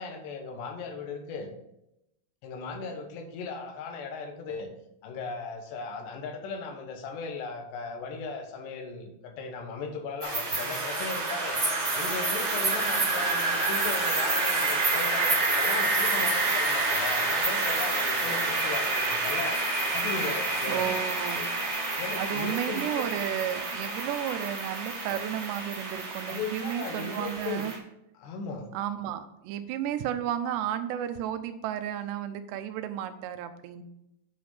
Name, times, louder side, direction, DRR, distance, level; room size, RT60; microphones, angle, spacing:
voice 1, 0.0-1.5 2.4-4.7 5.0-21.0 21.4-21.5 22.0-23.0 26.3-27.7 28.2-28.7, left 4 dB, 85° left, 4 dB, 3.5 m, -37 dB
sound 1, 10.2-27.8, right 3 dB, 25° right, 1.2 m, -28 dB
voice 2, 20.7-21.5 22.2-27.7 28.7-33.8, right 10 dB, 90° right, 10 dB, 2.9 m, -33 dB
8.7 x 5.2 x 5.6 m, 0.85 s
omnidirectional pair, 4.8 m